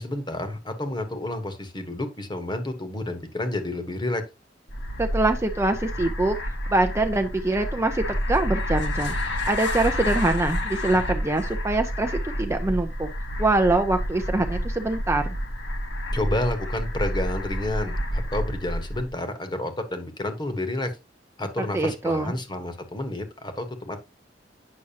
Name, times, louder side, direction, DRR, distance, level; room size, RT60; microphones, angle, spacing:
voice 1, 0.0-4.2 16.1-21.0 21.4-24.0, left 1 dB, 25° left, 1.2 m, -30 dB
sound 1, 4.7-19.1, equal, 70° left, 1.6 m, -29 dB
voice 2, 5.0-6.4 6.7-9.1 9.4-13.1 13.4-15.3 21.7-22.3, right 2 dB, 15° right, 0.5 m, -24 dB
8.5 x 6.0 x 2.9 m
head